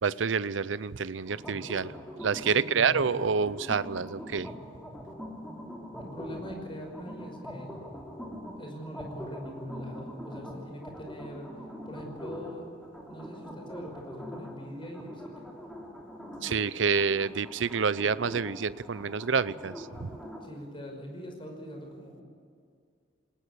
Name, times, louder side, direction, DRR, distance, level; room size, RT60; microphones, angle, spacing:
voice 1, 0.0-1.9 2.2-4.5 16.4-20.1, right 5 dB, 85° right, 17 dB, 0.6 m, -28 dB
sound 1, 1.2-20.5, equal, 5° left, 3.2 m, -43 dB
voice 2, 2.7-3.1 6.0-7.7 8.6-11.5 11.9-12.6 13.1-15.2 20.4-22.2, equal, 30° left, 2 dB, 5.5 m, -42 dB
21.0 x 19.5 x 8.5 m, 2.2 s
head